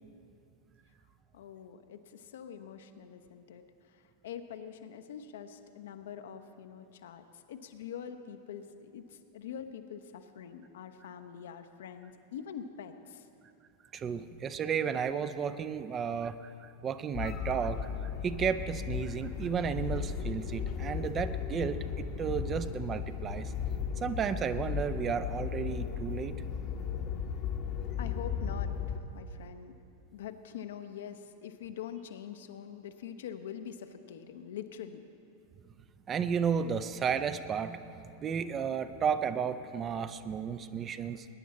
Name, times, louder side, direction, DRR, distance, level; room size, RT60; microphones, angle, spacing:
voice 1, 1.3-13.3 28.0-29.8 30.1-35.0, left 8 dB, 60° left, 8 dB, 0.7 m, -44 dB
voice 2, 13.9-23.5 24.0-26.4 36.1-41.3, right 7 dB, 25° right, 11 dB, 0.5 m, -33 dB
sound 1, 17.1-29.0, left 7 dB, 35° left, 0.9 m, -36 dB
20.0 x 10.0 x 4.2 m, 2.6 s
figure-of-eight pair, 90°, 0 cm